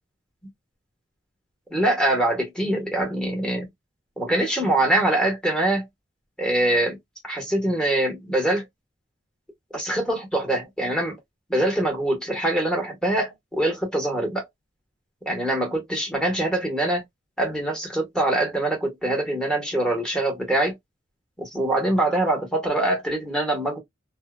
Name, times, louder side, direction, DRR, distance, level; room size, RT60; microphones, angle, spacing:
voice 1, 1.7-3.7 4.2-5.9 6.4-7.0 7.2-8.6 9.7-11.2 11.5-14.5 15.3-17.0 17.4-20.7 21.4-23.8, right 1 dB, 5° left, 0.9 m, -24 dB
2.7 x 2.0 x 2.3 m
head